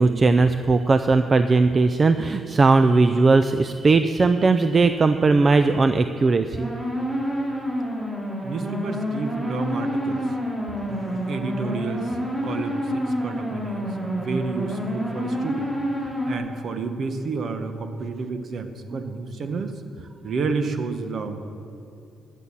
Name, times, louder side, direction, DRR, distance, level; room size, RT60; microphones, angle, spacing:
voice 1, 0.0-6.7, right 3 dB, 35° right, 9 dB, 0.5 m, -18 dB
sound 1, 6.5-16.4, equal, 20° right, 3.4 m, -28 dB
voice 2, 8.4-10.3 10.9-15.7 16.3-19.8 20.2-21.5, right 4 dB, 55° right, 8 dB, 1.1 m, -30 dB
12.5 x 8.3 x 7.3 m, 2.6 s
cardioid pair, 90°, 0 cm